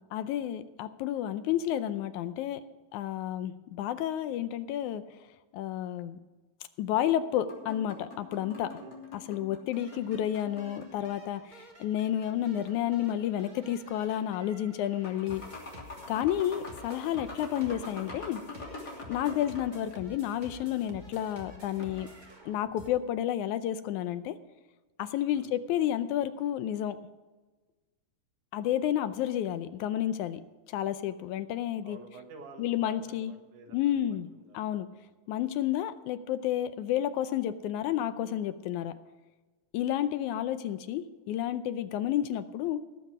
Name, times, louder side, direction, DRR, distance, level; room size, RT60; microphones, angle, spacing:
voice 1, 0.0-2.6 2.9-5.0 5.5-6.2 6.8-8.7 9.3-15.4 16.1-18.4 19.1-22.1 22.5-24.4 25.0-27.0 28.5-30.4 30.7-32.0 32.6-33.3 33.7-34.3 34.5-34.9 35.3-38.9 39.7-42.8, left 11 dB, 80° left, 12 dB, 2.0 m, -31 dB
sound 1, 7.5-11.2 12.7-13.5 14.3-14.4 14.8-19.9 21.6-22.3, left 3 dB, 30° left, 3.5 m, -45 dB
voice 2, 8.8-9.3 9.6-9.8 12.3-12.5 19.3-19.5 25.3-25.5 31.8-35.0 40.4-40.6, right 4 dB, 75° right, 3 dB, 2.9 m, -51 dB
sound 2, 9.7-22.9, equal, 25° right, 1.0 m, -51 dB
18.0 x 7.7 x 5.0 m, 1.2 s
omnidirectional pair, 3.5 m